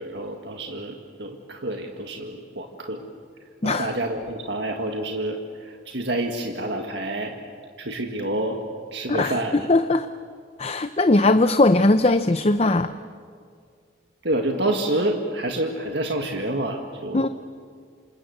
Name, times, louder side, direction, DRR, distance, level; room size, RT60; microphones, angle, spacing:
voice 1, 0.0-3.1 3.6-5.4 5.6-7.4 7.8-8.6 8.9-9.6 14.2-17.3, right 1 dB, 60° right, 3 dB, 1.9 m, -28 dB
voice 2, 9.1-10.1 10.6-12.9 17.1-17.3, left 2 dB, 30° left, 10 dB, 0.6 m, -19 dB
27.5 x 27.0 x 8.0 m, 2.1 s
head